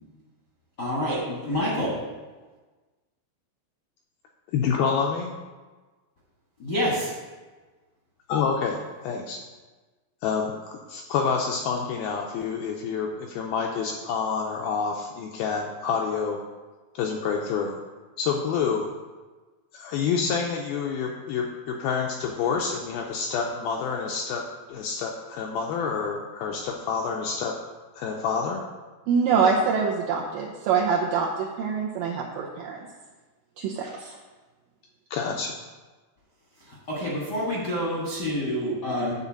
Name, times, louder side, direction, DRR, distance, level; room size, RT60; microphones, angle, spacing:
voice 1, 0.8-1.9 6.6-7.1 36.9-39.1, equal, 60° left, -6 dB, 1.0 m, -27 dB
voice 2, 4.5-5.3 8.3-9.4 10.2-16.4 17.0-17.8 18.2-18.9 19.7-24.4 24.7-27.6 28.0-28.6 35.1-35.5, left 6 dB, 85° left, 1 dB, 2.2 m, -28 dB
voice 3, 29.1-32.9 33.6-34.2, right 5 dB, 80° right, -2 dB, 2.0 m, -25 dB
9.6 x 4.0 x 7.3 m, 1.3 s
omnidirectional pair, 4.8 m